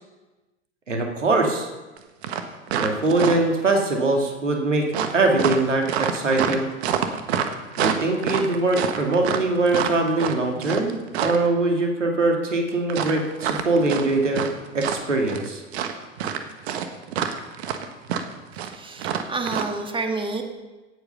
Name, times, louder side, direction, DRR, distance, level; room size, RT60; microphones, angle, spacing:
voice 1, 0.9-1.7 2.8-4.9 5.1-6.7 7.8-14.5 14.7-15.6, right 2 dB, 85° right, 2 dB, 2.3 m, -22 dB
sound 1, 2.0-2.1 2.2-3.6 4.9-11.5 12.9-14.5 14.8-15.5 15.7-19.7, right 8 dB, 60° right, 1.5 m, -26 dB
voice 2, 18.6-20.4, right 3 dB, 15° right, 4 dB, 1.7 m, -29 dB
17.0 x 8.1 x 5.5 m, 1.2 s
figure-of-eight pair, 85°, 36 cm